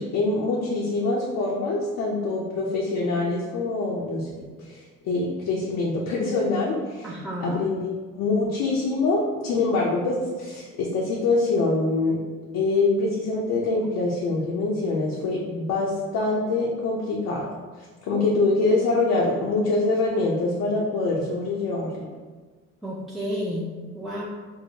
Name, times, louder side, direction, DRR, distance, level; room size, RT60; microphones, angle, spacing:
voice 1, 0.0-4.3 4.7-4.8 5.0-7.1 7.4-12.2 12.5-17.5 18.0-22.1, left 3 dB, 80° left, -4 dB, 0.6 m, -24 dB
voice 2, 7.0-7.6 18.1-18.3 22.8-23.6 23.9-24.2, equal, ahead, -5 dB, 0.5 m, -31 dB
4.5 x 2.0 x 2.7 m, 1.4 s
cardioid pair, 90°, 30 cm